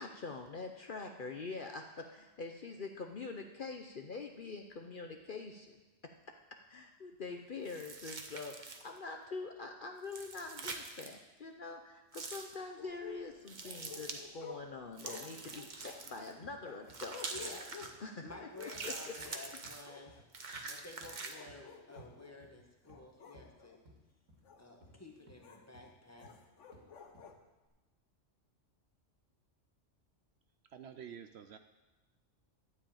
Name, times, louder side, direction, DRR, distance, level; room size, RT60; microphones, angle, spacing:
voice 1, 0.0-5.8 6.7-17.2 18.0-19.4, left 4 dB, 50° left, 4 dB, 0.8 m, -45 dB
sound 1, 7.6-9.0 10.0-11.1 12.1-12.5 13.5-14.2 15.0-16.3 16.9-17.9 18.6-19.9 20.3-21.3, right 3 dB, 40° right, 1.0 m, -45 dB
sound 2, 12.8-19.5 19.8-20.2 20.9-22.4 22.9-23.8 24.4-24.6 25.4-25.6 26.2-27.3, left 6 dB, 70° left, 1.3 m, -52 dB
sound 3, 16.4-16.6 16.9-17.1 17.3-17.5 17.8-18.0 18.3-18.4 18.7-19.3 19.6-19.8 20.1-20.3 20.5-20.7 21.0-21.1 21.5-21.6 22.0-22.1 22.4-23.0 23.3-23.5 23.9-24.0 24.3-24.4 24.8-25.0 25.3-25.4 25.7-25.9 26.2-26.4 26.7-26.8 27.1-27.4 27.7-27.8, right 1 dB, 85° right, 2.5 m, -59 dB
voice 2, 17.3-17.7 18.2-20.1 20.7-23.8 24.6-26.3, left 2 dB, 10° left, 0 dB, 1.4 m, -52 dB
voice 3, 30.7-31.6, right 8 dB, 65° right, 9 dB, 0.8 m, -49 dB
12.5 x 5.0 x 8.6 m, 1.1 s
omnidirectional pair, 1.3 m